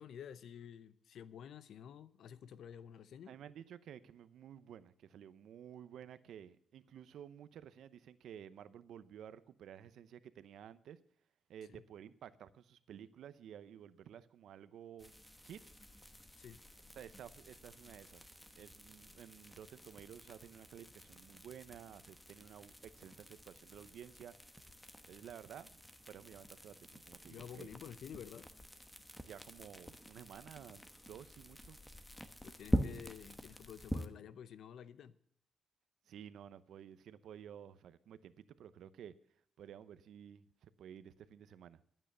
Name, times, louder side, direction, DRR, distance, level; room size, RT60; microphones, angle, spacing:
voice 1, 0.0-3.4 11.7-11.8 16.4-16.6 27.3-28.5 32.4-35.2, left 8 dB, 75° left, 0.7 m, -51 dB
voice 2, 3.3-11.0 11.5-15.1 15.4-15.6 17.0-18.2 18.6-24.3 25.1-25.8 26.1-27.7 29.2-31.8 36.1-39.1 39.6-40.4 40.8-41.8, right 9 dB, 80° right, 0.7 m, -53 dB
sound 1, 15.0-34.1, equal, 5° left, 1.0 m, -45 dB
12.5 x 9.0 x 6.7 m
cardioid pair, 120°, 0 cm